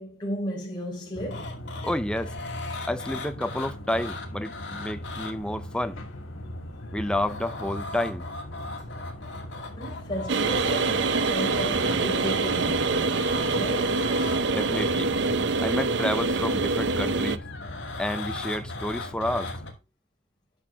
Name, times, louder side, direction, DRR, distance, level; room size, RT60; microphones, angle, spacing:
voice 1, 0.0-1.5 9.7-14.1, equal, 20° left, 3.8 m, -34 dB
sound 1, 1.1-19.7, equal, 80° left, 2.8 m, -39 dB
sound 2, 1.3-5.3 6.8-14.4 15.5-15.7 17.3-19.7, left 3 dB, 60° left, 2.4 m, -39 dB
voice 2, 1.8-2.4 2.9-6.0 6.9-8.2 14.5-15.1 15.6-17.4 18.0-19.5, left 1 dB, 5° left, 0.5 m, -30 dB
sound 3, 10.3-17.4, right 3 dB, 60° right, 0.6 m, -25 dB
10.0 x 6.3 x 3.4 m
head